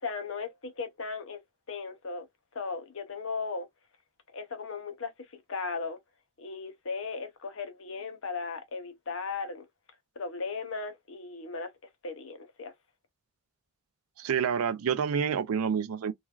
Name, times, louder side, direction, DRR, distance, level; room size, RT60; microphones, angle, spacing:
voice 1, 0.0-1.4 1.7-2.3 2.5-3.7 4.3-5.1 5.5-6.0 6.4-9.7 10.2-11.7 12.0-12.7, left 4 dB, 60° left, 0.7 m, -36 dB
voice 2, 14.2-16.1, right 7 dB, 80° right, 0.4 m, -28 dB
3.1 x 2.3 x 2.3 m
head